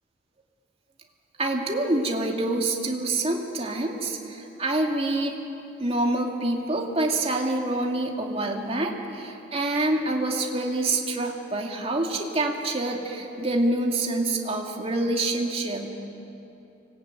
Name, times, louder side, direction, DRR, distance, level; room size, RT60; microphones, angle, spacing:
voice 1, 1.4-5.4 5.8-15.9, right 2 dB, 30° right, 1 dB, 2.5 m, -26 dB
24.5 x 19.5 x 9.1 m, 2.8 s
head